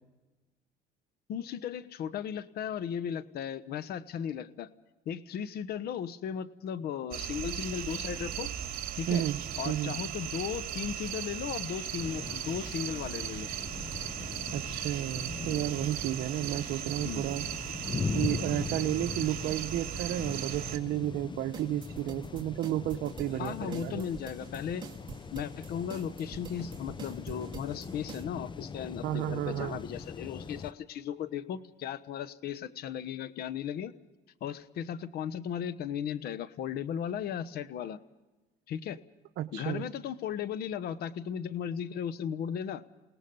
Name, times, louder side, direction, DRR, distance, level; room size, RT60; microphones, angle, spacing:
voice 1, 1.3-4.7 5.1-8.5 8.9-9.2 9.6-13.5 17.0-17.2 23.4-24.9 25.3-33.9 34.4-38.0 38.7-39.0 39.5-42.8, left 8 dB, 65° left, 14 dB, 1.1 m, -36 dB
Cricket on Summer Night (binaural), 7.1-20.8, right 10 dB, 60° right, 2.4 m, -37 dB
voice 2, 9.1-9.4 9.6-9.9 14.5-17.5 18.1-24.1 29.0-29.8 39.4-39.9, right 13 dB, 80° right, 5 dB, 0.9 m, -32 dB
sound 1, 12.0-30.7, left 5 dB, 30° left, 0.8 m, -41 dB
sound 2, 21.5-28.2, right 6 dB, 30° right, 2.4 m, -46 dB
29.0 x 18.5 x 5.4 m, 1.2 s
cardioid pair, 110°, 17 cm